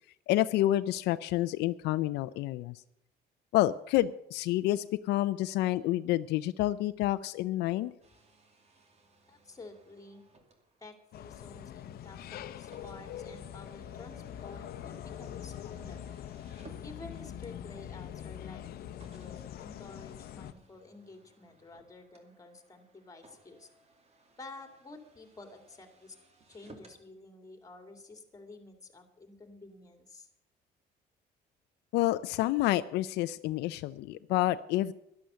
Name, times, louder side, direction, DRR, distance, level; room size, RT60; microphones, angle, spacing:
voice 1, 0.3-2.8 3.5-7.9 31.9-34.9, left 15 dB, 85° left, 13 dB, 0.5 m, -29 dB
sound 1, 8.0-17.5 18.2-18.3 19.0-27.0, right 3 dB, 40° right, 2.5 m, -60 dB
voice 2, 9.3-10.2 10.8-16.1 16.8-23.7 24.4-26.2 26.5-30.3, left 2 dB, 20° left, 6 dB, 2.5 m, -51 dB
sound 2, 11.1-20.5, left 10 dB, 65° left, 0.8 m, -43 dB
12.0 x 11.5 x 6.8 m, 0.78 s
cardioid pair, 110°, 17 cm